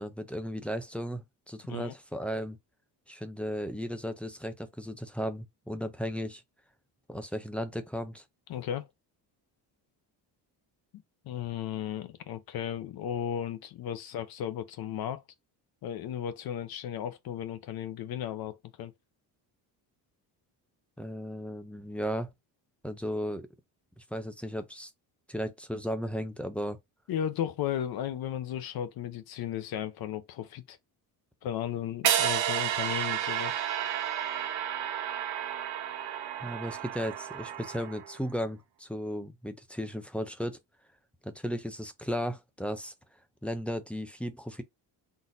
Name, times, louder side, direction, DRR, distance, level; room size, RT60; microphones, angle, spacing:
voice 1, 0.0-2.6 3.1-6.4 7.1-8.2 21.0-22.3 22.8-23.5 24.1-24.9 25.3-26.8 36.4-40.6 41.2-42.9 43.4-44.6, equal, 5° left, 0.4 m, -35 dB
voice 2, 8.5-8.9 11.3-15.2 15.8-18.9 27.1-30.8 31.4-33.6, left 10 dB, 60° left, 0.7 m, -35 dB
sound 1, 32.0-38.2, right 10 dB, 65° right, 0.8 m, -31 dB
4.0 x 2.5 x 4.0 m
cardioid pair, 150°, 42 cm